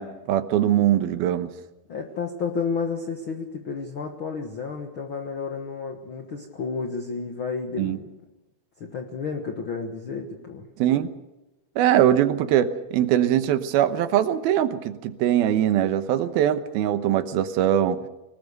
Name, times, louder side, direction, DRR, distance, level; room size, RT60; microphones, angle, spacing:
voice 1, 0.0-1.5 7.8-8.0 10.8-11.1 11.8-18.0, right 11 dB, 75° right, 10 dB, 2.8 m, -22 dB
voice 2, 1.9-8.0 8.8-10.7, left 5 dB, 75° left, 3 dB, 1.1 m, -31 dB
24.0 x 19.5 x 6.7 m, 1.0 s
omnidirectional pair, 4.6 m